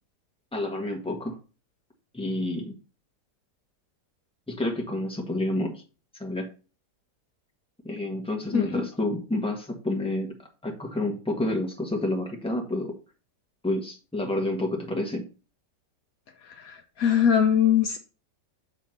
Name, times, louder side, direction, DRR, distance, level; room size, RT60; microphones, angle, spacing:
voice 1, 0.5-1.4 2.1-2.7 4.5-5.8 6.1-6.5 7.8-10.3 10.6-12.9 13.6-15.2, left 1 dB, 5° left, 1 dB, 1.5 m, -29 dB
voice 2, 16.4-18.0, left 8 dB, 65° left, 6 dB, 1.2 m, -22 dB
7.3 x 3.6 x 5.9 m, 0.33 s
omnidirectional pair, 1.8 m